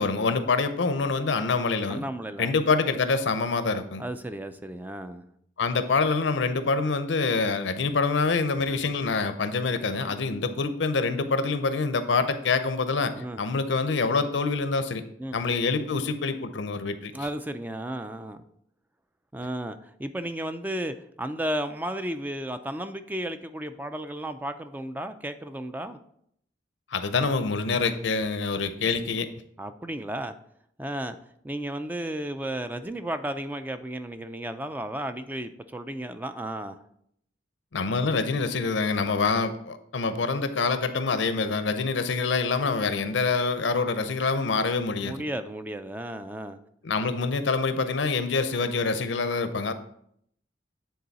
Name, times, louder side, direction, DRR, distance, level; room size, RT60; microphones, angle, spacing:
voice 1, 0.0-2.0 2.4-4.0 5.6-15.0 15.3-17.1 26.9-29.3 37.7-45.1 46.8-49.7, left 4 dB, 75° left, 10 dB, 0.6 m, -26 dB
voice 2, 1.9-2.5 4.0-5.2 13.2-13.4 15.2-15.4 17.1-18.4 19.3-26.0 29.6-30.3 30.8-31.2 31.4-36.8 45.0-46.6, right 1 dB, 10° right, 10 dB, 0.3 m, -33 dB
9.4 x 3.8 x 4.1 m, 0.70 s
head